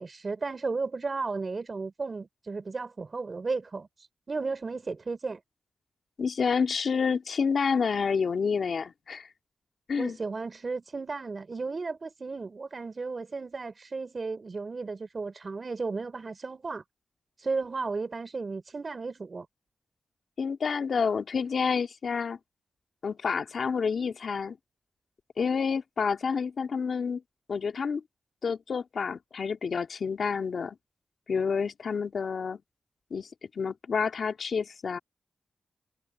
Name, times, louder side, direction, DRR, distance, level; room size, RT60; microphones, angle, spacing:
voice 1, 0.0-3.9 4.3-5.4 10.0-16.8 17.4-19.5, right 4 dB, 50° right, 3.8 m, -34 dB
voice 2, 6.2-9.3 9.9-10.2 20.4-22.4 23.0-24.6 25.4-27.2 27.5-28.0 28.4-30.8 31.3-32.6 33.1-33.3 33.6-35.0, left 5 dB, 70° left, 2.3 m, -29 dB
cardioid pair, 50°, 0 cm